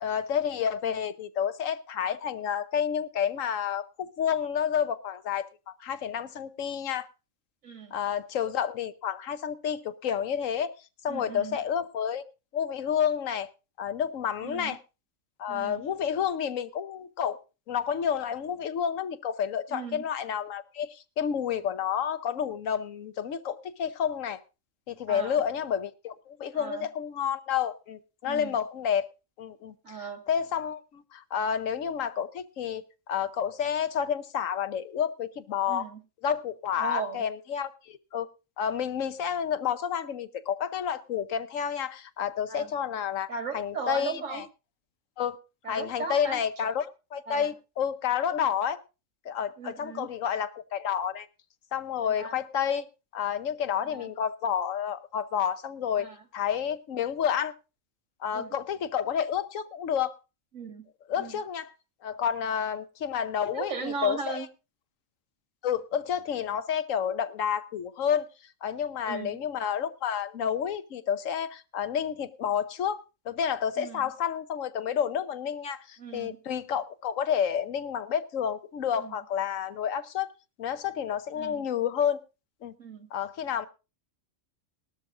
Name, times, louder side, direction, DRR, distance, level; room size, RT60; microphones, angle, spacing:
voice 1, 0.0-7.1 7.9-10.7 11.0-12.2 12.5-13.5 13.8-14.8 15.4-17.4 17.7-24.4 24.9-29.1 29.4-29.7 30.3-32.8 33.1-35.8 36.2-38.3 38.6-44.4 45.2-45.4 45.7-48.8 49.2-51.3 51.7-52.9 53.1-56.1 56.3-57.5 58.2-60.2 61.1-61.7 62.0-64.5 65.6-68.3 68.6-80.3 80.6-82.2 82.6-82.7 83.1-83.7, left 8 dB, 85° left, 1.2 m, -30 dB
voice 2, 7.6-8.0 11.1-11.6 14.4-14.8 15.5-15.8 19.7-20.0 25.1-25.4 26.5-26.9 28.2-28.6 29.8-30.2 35.7-36.0 36.8-37.2 42.5-42.7 43.3-44.4 45.6-46.4 47.3-47.5 49.6-50.1 52.0-52.4 53.8-54.1 56.0-56.2 58.3-58.6 60.5-60.8 61.2-61.4 63.4-64.5 69.1-69.4 73.8-74.1 76.0-76.4 79.0-79.2 81.3-81.6 82.8-83.1, right 5 dB, 80° right, 2.2 m, -37 dB
18.5 x 12.5 x 2.5 m
omnidirectional pair, 1.3 m